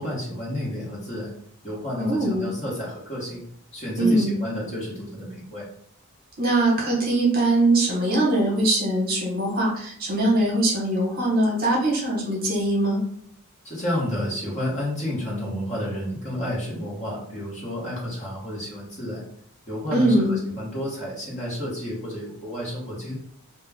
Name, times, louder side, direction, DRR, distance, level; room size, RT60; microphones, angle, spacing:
voice 1, 0.0-1.3 1.6-3.4 3.7-5.7 13.6-19.2 19.7-23.2, left 1 dB, 35° left, -5 dB, 0.9 m, -31 dB
voice 2, 2.0-2.5 4.0-4.4 6.4-13.0 19.9-20.4, right 1 dB, 40° right, -3 dB, 0.9 m, -22 dB
2.3 x 2.2 x 3.3 m, 0.66 s
head